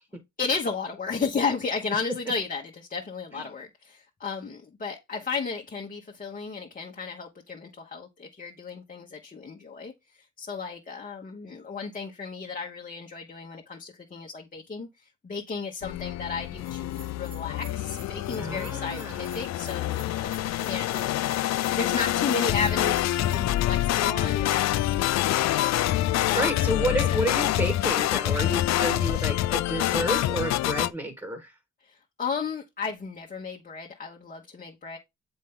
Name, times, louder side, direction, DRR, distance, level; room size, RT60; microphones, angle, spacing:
voice 1, 0.4-9.9 10.4-14.9 15.2-21.3 21.8-25.7 26.0-27.2 31.8-35.0, left 5 dB, 30° left, 1.1 m, -34 dB
sound 1, 15.8-30.9, left 14 dB, 65° left, 0.5 m, -26 dB
Bell, 16.6-23.6, right 6 dB, 75° right, 2.7 m, -50 dB
voice 2, 18.4-19.3 26.3-31.5, right 1 dB, 10° right, 1.6 m, -30 dB
7.3 x 4.4 x 3.7 m
cardioid pair, 90°, 30 cm